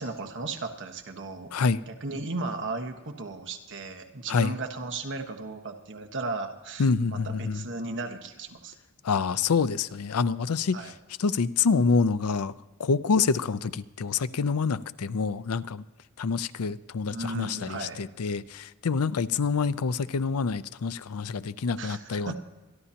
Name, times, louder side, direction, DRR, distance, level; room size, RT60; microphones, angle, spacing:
voice 1, 0.0-1.5 1.9-8.7 10.7-10.9 17.1-18.0 21.8-22.3, right 3 dB, 55° right, 5 dB, 1.4 m, -35 dB
voice 2, 1.5-1.8 4.3-4.5 6.8-7.7 9.0-10.9 11.2-12.5 12.8-15.8 16.2-22.3, left 5 dB, 85° left, 15 dB, 0.5 m, -27 dB
26.5 x 11.0 x 2.9 m, 1.1 s
head